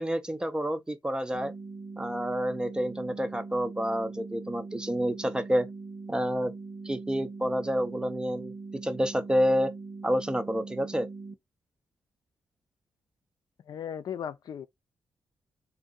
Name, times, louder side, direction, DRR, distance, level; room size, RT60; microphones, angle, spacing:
voice 1, 0.0-1.5 2.0-5.7 6.1-6.5 6.8-8.5 8.8-9.7 10.0-11.1, equal, 10° right, 0.4 m, -28 dB
sound 1, 1.3-11.3, right 3 dB, 75° right, 1.0 m, -42 dB
voice 2, 13.7-14.7, left 8 dB, 55° left, 0.4 m, -36 dB
3.7 x 2.6 x 3.8 m
wide cardioid pair, 165°, 8 cm